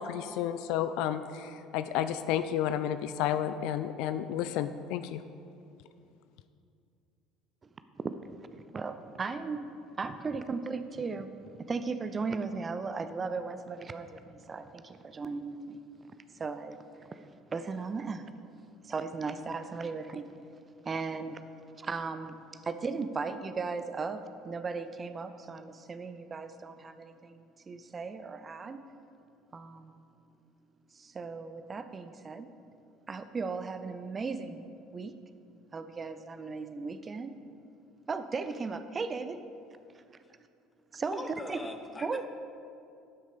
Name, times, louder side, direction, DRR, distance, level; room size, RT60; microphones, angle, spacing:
voice 1, 0.0-5.2, left 10 dB, 60° left, 11 dB, 0.3 m, -31 dB
voice 2, 8.0-15.8 16.3-18.3 18.8-20.3 20.8-24.2 24.4-28.8 29.5-30.0 30.9-32.5 33.1-35.1 35.7-37.3 38.1-39.4 40.9-41.6 42.0-42.2, right 4 dB, 30° right, 10 dB, 0.5 m, -37 dB
voice 3, 41.1-42.3, left 2 dB, 15° left, 6 dB, 1.0 m, -41 dB
11.5 x 6.4 x 5.1 m, 2.5 s
figure-of-eight pair, 60°, 0 cm